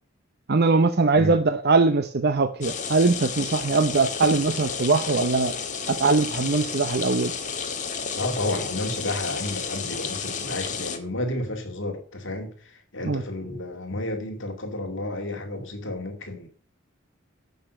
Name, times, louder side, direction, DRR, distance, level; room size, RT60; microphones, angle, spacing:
voice 1, 0.5-5.5 5.9-7.3 13.1-13.2, right 3 dB, 50° right, 9 dB, 0.8 m, -21 dB
sound 1, 2.6-11.0, left 5 dB, 40° left, 1.6 m, -32 dB
voice 2, 8.2-16.5, left 1 dB, 65° left, 4 dB, 2.4 m, -31 dB
11.0 x 6.8 x 6.3 m, 0.42 s
head